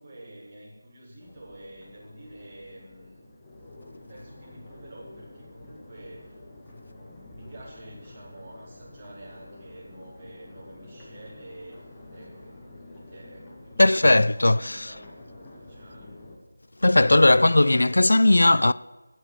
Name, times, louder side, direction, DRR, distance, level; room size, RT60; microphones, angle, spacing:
voice 1, 0.0-3.3 4.1-6.4 6.7-11.8 12.1-16.2, right 1 dB, 20° right, 4.3 m, -48 dB
Crowd, 1.2-16.3, left 2 dB, 15° left, 1.9 m, -48 dB
voice 2, 13.8-14.9 16.8-18.7, left 2 dB, 70° left, 0.4 m, -18 dB
12.5 x 8.0 x 8.2 m
figure-of-eight pair, 170°, 0 cm